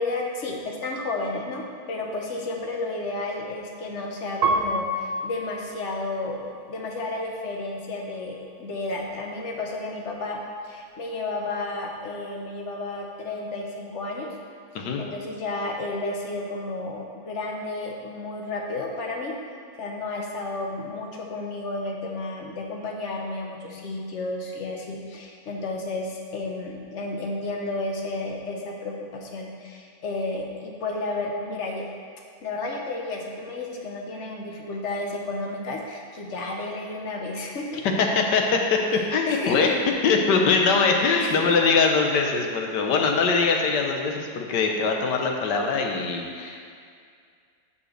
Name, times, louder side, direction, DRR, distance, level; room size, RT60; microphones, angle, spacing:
voice 1, 0.0-14.3 14.7-19.3 19.8-31.9 32.4-37.8 39.2-39.8 41.2-41.5, left 2 dB, 50° left, 0 dB, 1.2 m, -32 dB
Piano, 4.4-7.2 7.8-8.5, right 2 dB, 70° right, 1.4 m, -30 dB
voice 2, 38.0-39.7 40.0-46.6, left 4 dB, 85° left, 2 dB, 1.5 m, -22 dB
6.9 x 5.7 x 6.5 m, 2.2 s
omnidirectional pair, 1.8 m